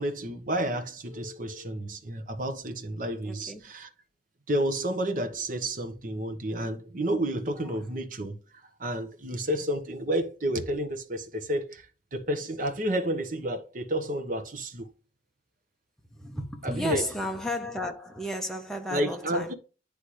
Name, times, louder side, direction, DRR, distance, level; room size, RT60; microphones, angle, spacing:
voice 1, 0.0-3.9 4.5-8.4 8.8-11.9 12.1-14.8 16.6-17.1 18.9-19.5, right 1 dB, 50° right, 1.0 m, -30 dB
voice 2, 3.2-3.6 7.5-7.8 16.1-19.5, left 1 dB, 5° left, 1.0 m, -34 dB
9.9 x 3.4 x 3.1 m
head